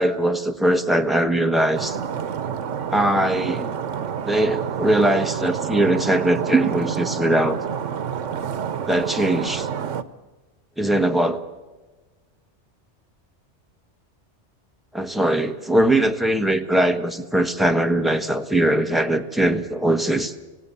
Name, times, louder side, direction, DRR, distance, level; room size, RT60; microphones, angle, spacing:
voice 1, 0.0-2.0 2.9-3.7 4.2-7.6 8.9-9.7 10.8-11.4 14.9-20.3, right 1 dB, ahead, 6 dB, 1.1 m, -21 dB
Stream, 1.7-10.0, right 8 dB, 90° right, 1.2 m, -28 dB
27.0 x 16.5 x 7.0 m, 1.3 s
omnidirectional pair, 1.2 m